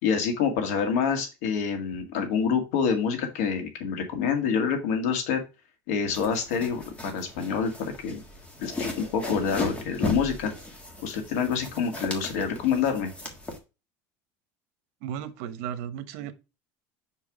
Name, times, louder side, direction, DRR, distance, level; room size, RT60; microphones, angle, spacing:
voice 1, 0.0-5.4 5.9-8.2 8.6-10.5 11.0-13.1, left 6 dB, 85° left, 2.1 m, -27 dB
sound 1, 6.1-13.6, left 2 dB, 15° left, 1.5 m, -37 dB
voice 2, 15.0-16.3, right 9 dB, 75° right, 1.0 m, -35 dB
5.7 x 4.7 x 4.7 m
cardioid pair, 155°, 8 cm